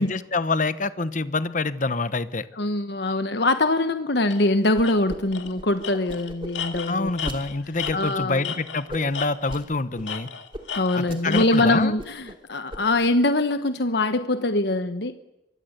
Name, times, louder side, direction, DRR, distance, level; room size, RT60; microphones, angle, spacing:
voice 1, 0.0-2.5 6.9-10.3 10.9-11.9, left 3 dB, 40° left, 13 dB, 1.0 m, -26 dB
voice 2, 2.6-7.1 7.9-8.5 10.7-15.1, left 2 dB, 60° left, 9 dB, 1.2 m, -23 dB
Tools, 4.3-4.4 4.8-4.9 5.3-5.5 5.8-8.9 9.1-9.7 10.0-11.7, left 7 dB, 80° left, 2.2 m, -34 dB
sound 1, 4.7-5.2 5.4-7.4 7.8-8.3 8.9-9.6 10.0-10.1 10.5-10.6 10.9-11.6 11.8-12.4 12.7-13.1, equal, 30° right, 3.1 m, -37 dB
24.0 x 23.5 x 8.1 m, 0.92 s
head